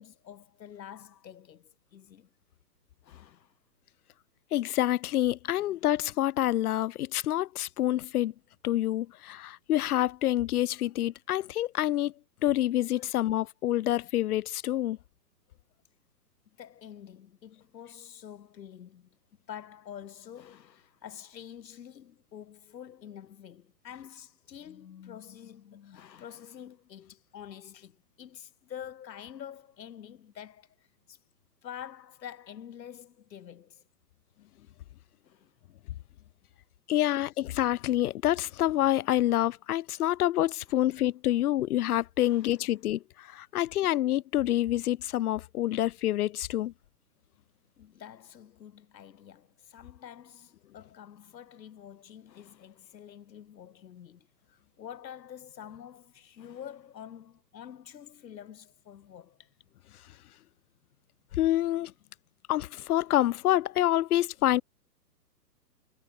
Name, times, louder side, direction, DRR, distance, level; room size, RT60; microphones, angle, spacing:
voice 1, 0.0-2.3 3.0-3.5 5.6-5.7 13.0-13.3 16.6-19.1 19.5-31.2 31.6-33.8 35.2-35.5 36.9-37.2 40.7-40.9 42.2-42.6 47.8-59.5, left 9 dB, 85° left, 1.1 m, -47 dB
voice 2, 4.5-8.3 8.6-12.1 12.4-15.0 36.9-46.7 61.3-61.9 62.5-64.6, left 13 dB, 65° left, 0.5 m, -27 dB
hypercardioid pair, 140°, 49 cm